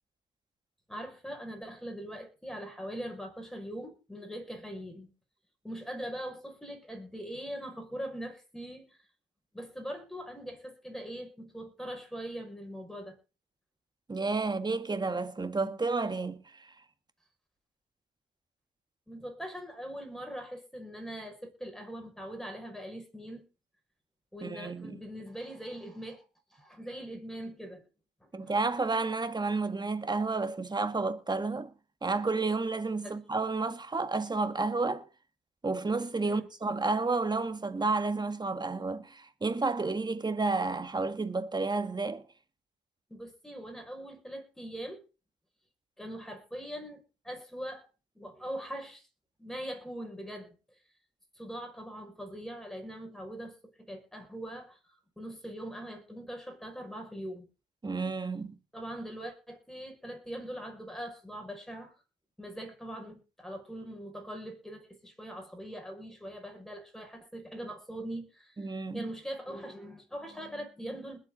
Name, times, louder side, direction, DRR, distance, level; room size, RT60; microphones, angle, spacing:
voice 1, 0.9-5.1 5.6-8.9 9.5-13.2 19.1-23.4 24.3-26.2 26.5-27.8 28.2-28.3 33.0-33.1 36.2-36.5 43.1-45.0 46.0-47.9 48.1-49.1 49.4-50.5 51.4-53.5 53.9-57.4 58.7-61.9 62.4-71.2, equal, ahead, 6.0 m, -41 dB
voice 2, 14.1-16.7 24.4-25.0 28.3-31.7 32.0-35.0 35.6-42.2 57.8-58.6 68.6-69.1, right 3 dB, 20° right, 1.7 m, -31 dB
20.5 x 7.9 x 4.0 m
cardioid pair, 90°, 20 cm